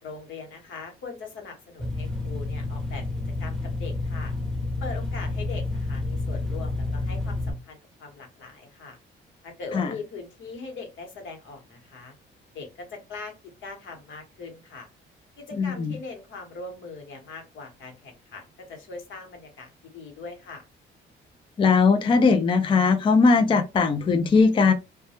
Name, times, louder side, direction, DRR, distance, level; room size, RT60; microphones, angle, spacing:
voice 1, 0.0-3.0 3.4-4.3 4.8-9.0 9.4-12.1 12.5-13.3 13.6-14.9 15.4-18.4 18.7-20.6, left 4 dB, 75° left, 1.0 m, -40 dB
sound 1, 1.8-7.5, left 2 dB, ahead, 0.7 m, -29 dB
voice 2, 15.6-15.9 21.6-24.7, left 4 dB, 25° left, 0.3 m, -19 dB
2.2 x 2.1 x 2.8 m
cardioid pair, 90°, 20 cm